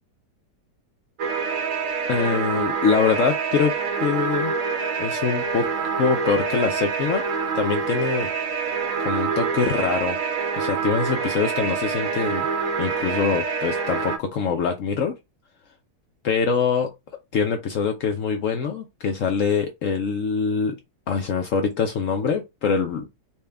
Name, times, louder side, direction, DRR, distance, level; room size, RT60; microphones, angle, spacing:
sound 1, 1.2-14.2, right 5 dB, 60° right, 0.9 m, -26 dB
voice 1, 2.1-4.5 5.0-5.7 6.0-7.2 7.5-8.3 9.0-10.2 10.6-12.5 12.8-15.1 16.2-16.9 17.3-20.8 21.1-23.1, left 6 dB, 70° left, 0.8 m, -24 dB
4.3 x 2.2 x 3.4 m
omnidirectional pair, 1.9 m